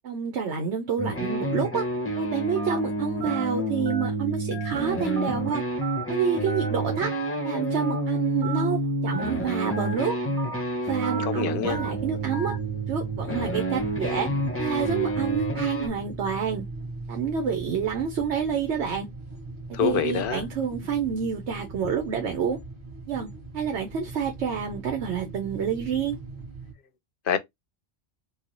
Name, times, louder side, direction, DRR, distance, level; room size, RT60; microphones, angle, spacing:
voice 1, 0.0-1.8 2.2-5.6 6.1-7.1 7.4-10.2 10.8-12.5 12.9-14.3 14.6-16.6 17.1-19.1 19.8-22.6 23.1-23.3 23.5-26.2, right 7 dB, 90° right, 1.0 m, -28 dB
sound 1, 1.0-15.9, right 1 dB, 15° left, 0.6 m, -29 dB
Telephone, 2.6-2.8 3.2-3.4 3.9-4.1 4.5-4.7 5.2-5.4 5.8-6.0 6.5-6.7 7.1-7.3 7.8-8.0 8.4-8.6 9.1-9.3 9.7-10.0 10.4-10.6 11.0-11.3 11.7-11.9 12.3-12.6, right 3 dB, 50° right, 1.1 m, -35 dB
voice 2, 11.3-11.8 19.8-20.4 27.3-27.4, left 7 dB, 60° left, 0.7 m, -25 dB
sound 2, 11.6-26.7, right 2 dB, 25° right, 1.2 m, -39 dB
3.1 x 2.3 x 3.8 m
omnidirectional pair, 1.1 m